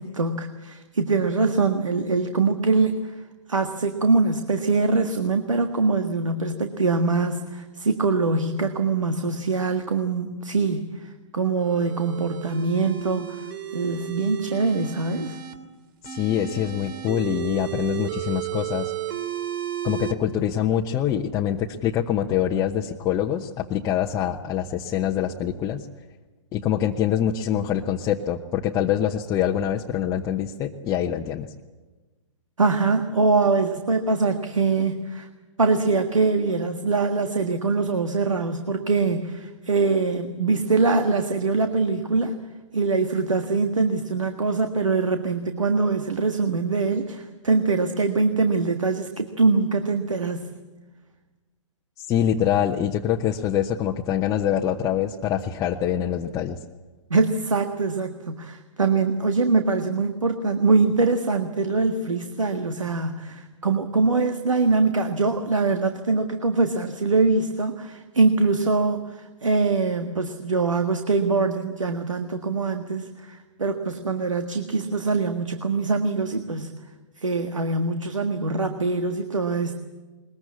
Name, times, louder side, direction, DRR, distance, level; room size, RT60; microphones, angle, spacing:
voice 1, 0.0-3.2 3.5-13.5 13.7-15.4 32.6-35.3 35.6-42.4 42.7-50.5 57.1-76.8 77.2-79.7, right 3 dB, 80° right, 7 dB, 1.7 m, -23 dB
sound 1, 11.6-15.5 16.0-20.1, right 12 dB, 45° right, 3.0 m, -33 dB
voice 2, 16.0-18.9 19.8-25.9 26.5-31.5 52.1-56.6, left 10 dB, 20° left, 1 dB, 1.0 m, -25 dB
21.5 x 21.0 x 8.6 m, 1.2 s
figure-of-eight pair, 120°, 16 cm